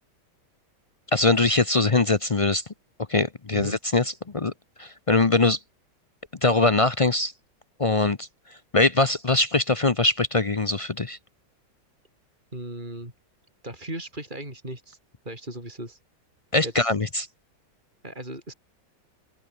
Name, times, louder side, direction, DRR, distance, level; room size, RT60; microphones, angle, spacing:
voice 1, 1.1-2.6 3.1-4.5 4.8-5.6 6.4-7.3 7.8-8.3 8.7-11.2 16.5-17.3, left 2 dB, 40° left, 0.4 m, -22 dB
voice 2, 12.5-13.1 13.6-15.0 15.3-16.0 16.6-16.9 18.0-18.5, right 1 dB, 25° right, 7.4 m, -37 dB
open air
omnidirectional pair, 1.9 m